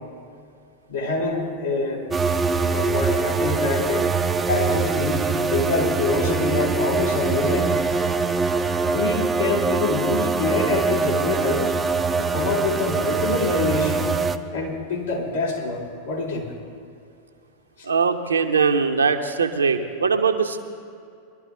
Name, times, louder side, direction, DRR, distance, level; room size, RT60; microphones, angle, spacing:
voice 1, 0.9-2.1 2.7-4.1 4.5-7.7 8.9-11.7 12.2-14.1 14.5-16.5, left 3 dB, 70° left, -3 dB, 3.3 m, -25 dB
sound 1, 2.1-14.4, right 4 dB, 15° right, 0.6 m, -23 dB
voice 2, 17.8-20.6, right 5 dB, 75° right, 6 dB, 0.9 m, -21 dB
22.0 x 12.5 x 3.8 m, 2.4 s
figure-of-eight pair, 90°, 0 cm